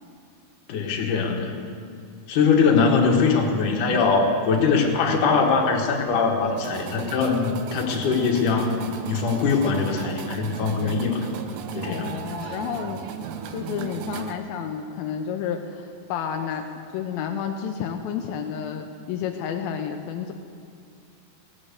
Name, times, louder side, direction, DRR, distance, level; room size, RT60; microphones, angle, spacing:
voice 1, 0.7-1.6 2.3-11.3 11.7-12.2 12.5-12.6, left 5 dB, 65° left, 1 dB, 2.8 m, -22 dB
sound 1, 6.6-14.3, right 7 dB, 80° right, 2.4 m, -35 dB
voice 2, 11.8-13.0 13.5-16.7 16.9-20.3, left 8 dB, 85° left, 4 dB, 2.4 m, -30 dB
17.0 x 7.3 x 8.2 m, 2.3 s
omnidirectional pair, 4.2 m